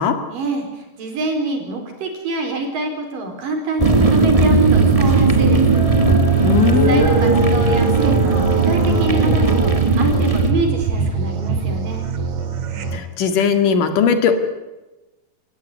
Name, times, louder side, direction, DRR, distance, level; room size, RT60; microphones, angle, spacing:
voice 1, 0.3-5.8 6.6-12.0, right 3 dB, 85° right, 3 dB, 6.0 m, -26 dB
sound 1, 3.8-10.5, right 3 dB, 20° right, 0.9 m, -18 dB
sound 2, 4.5-13.0, right 6 dB, 60° right, 3.1 m, -21 dB
sound 3, 5.5-9.8, equal, 10° left, 6.9 m, -24 dB
voice 2, 6.4-7.1 12.9-14.3, left 6 dB, 75° left, 8 dB, 3.4 m, -18 dB
28.0 x 15.0 x 9.7 m, 1.1 s
omnidirectional pair, 3.8 m